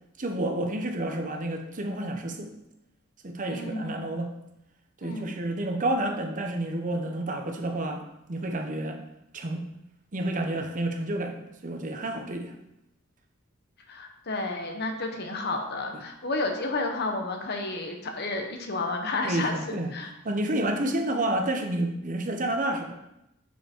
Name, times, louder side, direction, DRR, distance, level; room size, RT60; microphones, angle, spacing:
voice 1, 0.2-2.5 3.2-4.3 5.0-9.0 9.3-9.6 10.1-12.5 19.2-19.9 20.2-22.9, right 1 dB, 40° right, 4 dB, 0.8 m, -30 dB
voice 2, 3.5-4.1 5.0-5.3 13.9-20.1, left 2 dB, 50° left, 3 dB, 1.1 m, -31 dB
6.6 x 5.5 x 4.5 m, 0.86 s
head